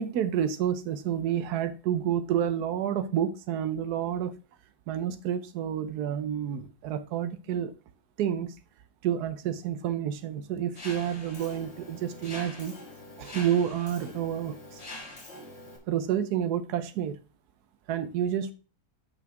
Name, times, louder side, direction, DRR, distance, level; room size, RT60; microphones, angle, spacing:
voice 1, 0.0-4.3 4.9-7.7 8.2-8.5 9.0-12.7 13.2-14.8 15.9-17.1 17.9-18.5, right 9 dB, 85° right, 1.3 m, -29 dB
Mechanisms, 10.8-15.8, left 2 dB, 45° left, 2.2 m, -44 dB
6.5 x 5.6 x 5.9 m
omnidirectional pair, 1.6 m